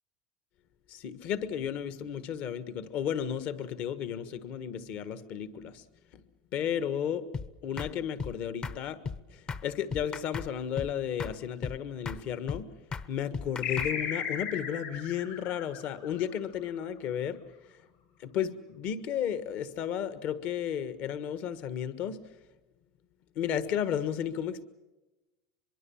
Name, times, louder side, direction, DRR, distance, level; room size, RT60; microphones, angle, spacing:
voice 1, 0.9-5.8 6.1-6.2 6.5-7.3 7.6-9.0 9.3-12.7 13.1-17.4 17.7-17.8 18.2-22.2 23.3-24.6, left 9 dB, 50° left, 13 dB, 1.5 m, -33 dB
sound 1, 7.3-7.5 7.8-7.9 8.2-8.3 8.6-8.8 9.0-9.2 9.5-9.6 9.9-10.5 10.8-10.9 11.2-11.3 11.6-11.8 12.0-12.2 12.5-12.6 12.9-13.1 13.3-13.9, left 5 dB, 25° left, 0.9 m, -35 dB
sound 2, 13.6-16.6, left 7 dB, 75° left, 7.9 m, -35 dB
23.5 x 23.5 x 7.2 m, 1.0 s
supercardioid pair, 135°, 3 cm